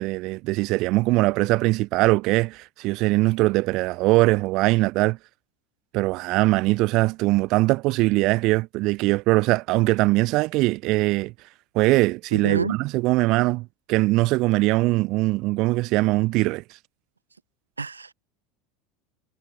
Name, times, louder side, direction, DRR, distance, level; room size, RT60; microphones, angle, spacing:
voice 1, 0.0-5.2 5.9-11.3 11.7-16.8, right 21 dB, 55° right, 3.6 m, -21 dB
voice 2, 12.3-12.8 17.8-18.1, right 4 dB, 90° right, 5.3 m, -27 dB
hypercardioid pair, 75°, 0 cm